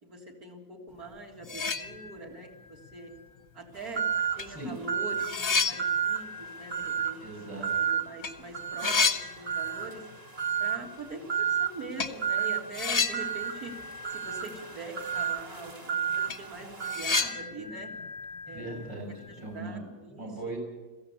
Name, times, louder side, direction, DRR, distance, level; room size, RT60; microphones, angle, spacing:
voice 1, 0.0-3.1 3.5-4.0 4.4-10.0 10.6-13.7 14.1-17.9 18.4-18.9 19.3-20.3, right 2 dB, 50° right, 4 dB, 3.9 m, -43 dB
sound 1, 1.1-1.2 1.4-2.5 2.8-2.9 3.9-4.0 4.4-8.3 8.6-10.2 10.4-10.5 12.0-12.2 12.7-14.9 15.1-15.2 15.7-15.8 16.1-19.3, left 4 dB, 30° left, 0.9 m, -32 dB
sound 2, 3.9-4.5 4.9-5.3 5.8-6.3 6.7-7.2 7.6-8.1 8.5-9.0 9.5-9.9 10.4-10.8 11.3-11.7 12.2-12.6 13.1-17.3, right 8 dB, 20° right, 1.5 m, -30 dB
voice 2, 7.2-7.7 18.5-20.6, right 2 dB, 65° right, 1 dB, 7.4 m, -39 dB
22.5 x 15.5 x 8.6 m, 1.2 s
omnidirectional pair, 2.0 m